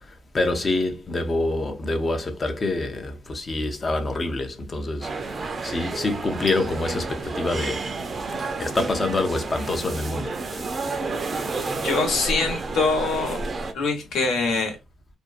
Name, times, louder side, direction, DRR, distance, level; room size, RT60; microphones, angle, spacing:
voice 1, 0.3-5.1 5.6-7.9 8.6-10.3 11.6-11.7, left 2 dB, 30° left, 0.6 m, -26 dB
sound 1, 5.0-13.7, right 3 dB, 40° right, 0.5 m, -30 dB
voice 2, 11.8-13.4 13.7-14.8, left 3 dB, 70° left, 1.0 m, -24 dB
2.6 x 2.2 x 2.4 m
cardioid pair, 90°, 0 cm